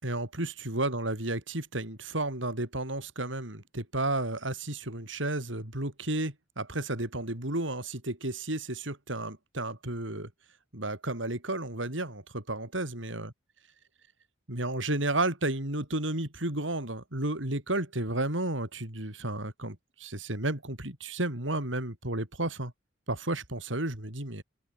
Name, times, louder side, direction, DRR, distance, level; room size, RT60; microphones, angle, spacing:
voice 1, 0.0-10.3 10.7-13.3 14.5-22.7 23.1-24.4, right 2 dB, 80° right, 5.4 m, -32 dB
open air
head